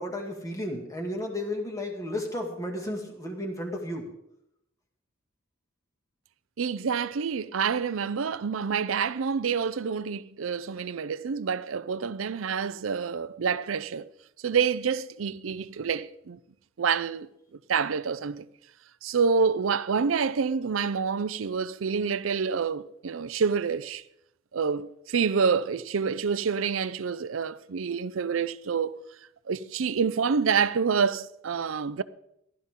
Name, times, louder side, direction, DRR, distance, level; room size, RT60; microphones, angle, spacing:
voice 1, 0.0-4.1, left 1 dB, 15° left, 2.2 m, -33 dB
voice 2, 6.6-14.1 14.4-16.4 16.8-17.3 17.7-18.5 19.0-24.0 24.5-29.0 29.5-32.0, right 6 dB, 85° right, 0.5 m, -27 dB
15.5 x 12.5 x 3.7 m
head